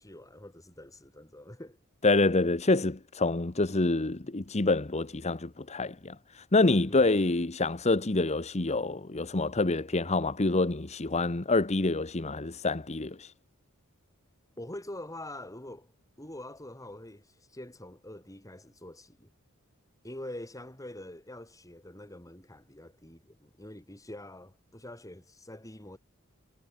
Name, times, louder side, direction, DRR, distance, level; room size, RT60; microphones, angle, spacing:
voice 1, 0.0-1.8 6.9-7.2 14.6-15.9 16.2-19.3 20.0-26.0, left 1 dB, 15° left, 4.8 m, -45 dB
voice 2, 2.0-13.3, left 2 dB, 30° left, 1.0 m, -27 dB
head